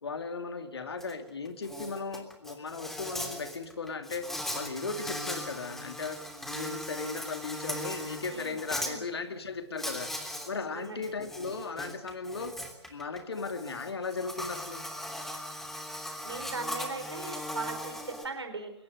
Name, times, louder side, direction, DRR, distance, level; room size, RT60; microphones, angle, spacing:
voice 1, 0.0-6.2 6.5-10.1 10.5-12.5 12.9-14.9, left 4 dB, 70° left, 8 dB, 2.6 m, -37 dB
Insect, 1.0-1.1 1.5-8.9 9.8-10.5 10.9-18.3, left 1 dB, ahead, 3.1 m, -39 dB
voice 2, 8.3-9.0 10.7-11.2 16.2-18.7, right 3 dB, 75° right, 6 dB, 4.2 m, -39 dB
22.5 x 19.5 x 8.0 m, 0.81 s
figure-of-eight pair, 110°, 14 cm